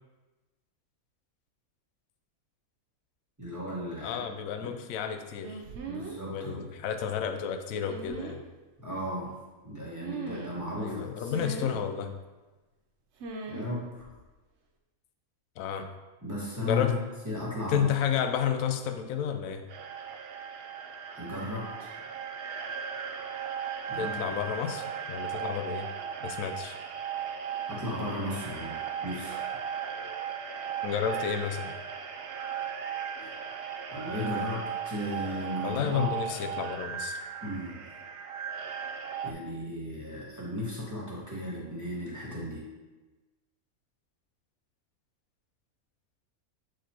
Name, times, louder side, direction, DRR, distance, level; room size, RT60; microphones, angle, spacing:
voice 1, 3.4-4.2 4.6-4.7 5.8-6.6 8.8-9.4 9.6-11.5 13.4-14.0 16.2-17.9 21.1-21.9 23.9-24.4 27.3-29.4 33.2-36.1 37.4-37.9 39.2-42.7, left 1 dB, 10° right, -6 dB, 1.4 m, -36 dB
voice 2, 4.0-5.6 6.3-8.4 10.8-12.1 15.6-15.9 16.6-16.9 17.7-19.7 24.0-25.9 26.2-26.7 30.8-31.7 35.6-37.2, left 8 dB, 70° left, 7 dB, 1.0 m, -31 dB
sound 1, 5.4-6.2 7.9-8.4 10.0-10.6 11.3-11.8 13.2-13.7 13.9-14.2, right 4 dB, 55° right, 0.9 m, -39 dB
sound 2, 19.7-39.3, right 7 dB, 75° right, 0.5 m, -37 dB
8.0 x 5.0 x 2.9 m, 1.2 s
omnidirectional pair, 1.5 m